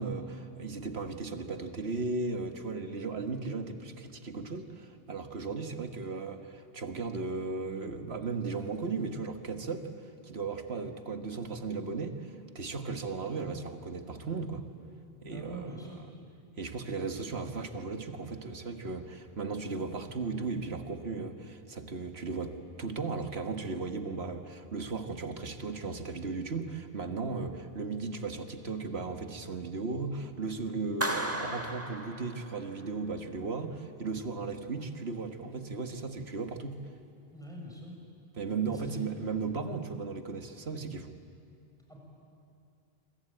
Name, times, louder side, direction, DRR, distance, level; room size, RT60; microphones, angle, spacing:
voice 1, 0.0-9.9 10.2-14.6 15.2-15.7 16.6-36.9 38.4-41.2, right 4 dB, 80° right, 7 dB, 1.8 m, -36 dB
voice 2, 15.3-16.1 37.3-37.9 38.6-39.1 41.9-42.0, equal, 5° left, -2 dB, 6.8 m, -44 dB
Clapping, 31.0-32.9, right 1 dB, 15° right, 1.7 m, -35 dB
26.5 x 24.5 x 8.9 m, 2.5 s
omnidirectional pair, 1.0 m